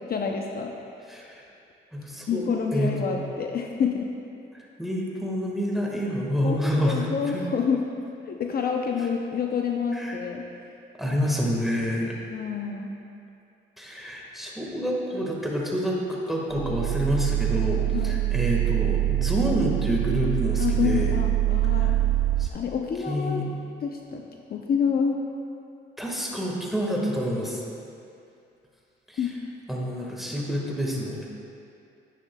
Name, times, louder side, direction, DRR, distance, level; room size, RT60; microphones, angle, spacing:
voice 1, 0.1-0.7 2.3-4.1 6.4-7.8 8.3-10.4 11.0-11.2 12.3-12.9 17.9-18.2 20.6-22.0 22.5-23.4 23.8-24.2 24.5-25.2 29.2-29.3, left 6 dB, 50° left, 2 dB, 0.6 m, -28 dB
voice 2, 1.1-1.4 1.9-2.4 2.7-3.3 4.8-7.4 9.9-10.2 11.0-12.2 13.8-21.2 21.7-21.9 22.4-22.5 23.1-23.5 26.0-27.6 29.1-29.3 29.7-31.3, equal, ahead, -3 dB, 1.6 m, -28 dB
sound 1, 16.5-22.5, right 14 dB, 50° right, 0.5 m, -24 dB
10.0 x 9.7 x 2.3 m, 2.5 s
cardioid pair, 90°, 20 cm